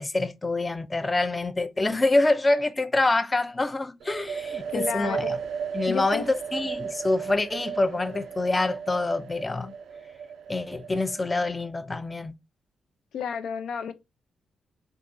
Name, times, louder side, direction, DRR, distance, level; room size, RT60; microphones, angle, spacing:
voice 1, 0.0-5.4 5.7-6.3 6.5-9.7 10.5-12.3, left 2 dB, 20° left, 0.3 m, -26 dB
sound 1, 4.0-11.7, right 6 dB, 80° right, 0.4 m, -35 dB
voice 2, 4.7-5.3 5.9-6.2 13.1-13.9, left 7 dB, 90° left, 0.4 m, -31 dB
3.5 x 2.9 x 2.5 m
cardioid pair, 110°, 0 cm